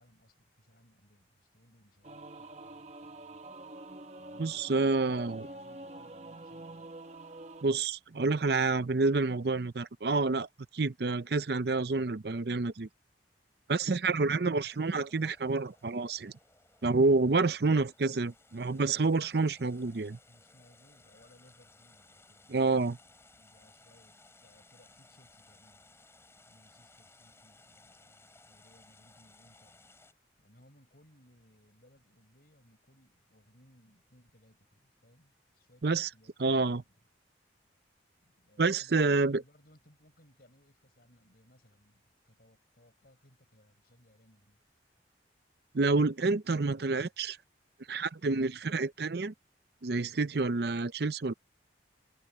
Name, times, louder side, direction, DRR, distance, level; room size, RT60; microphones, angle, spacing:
voice 1, 0.0-3.4 4.2-6.9 20.3-23.0 23.3-25.9 26.5-29.9 30.4-36.9 38.2-44.6, left 1 dB, 55° left, 6.2 m, -63 dB
Singing / Musical instrument, 2.0-7.6, right 2 dB, 35° right, 1.0 m, -46 dB
voice 2, 4.4-5.4 7.6-10.5 10.7-12.9 13.7-16.3 16.8-20.2 22.5-23.0 35.8-36.1 36.4-36.8 38.6-39.4 45.7-47.4 47.9-49.3 49.8-51.3, right 3 dB, 60° right, 0.6 m, -28 dB
sound 1, 14.6-30.1, left 2 dB, 15° left, 8.0 m, -61 dB
head